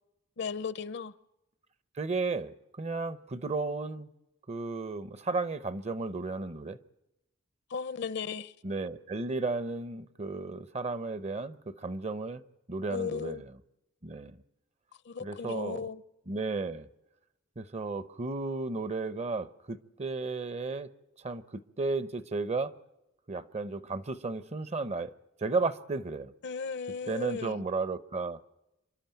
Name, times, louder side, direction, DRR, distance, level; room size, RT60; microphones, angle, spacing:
voice 1, 0.4-1.1 7.7-8.5 12.9-13.4 15.1-16.0 26.4-27.6, left 6 dB, 60° left, 0.7 m, -36 dB
voice 2, 2.0-4.1 4.5-6.8 8.6-12.4 12.7-13.5 14.0-14.4 15.2-15.9 16.3-16.9 17.6-20.9 21.2-22.7 23.3-25.1 25.4-26.3 27.1-28.4, right 3 dB, 35° right, 0.8 m, -34 dB
27.5 x 12.5 x 9.0 m
head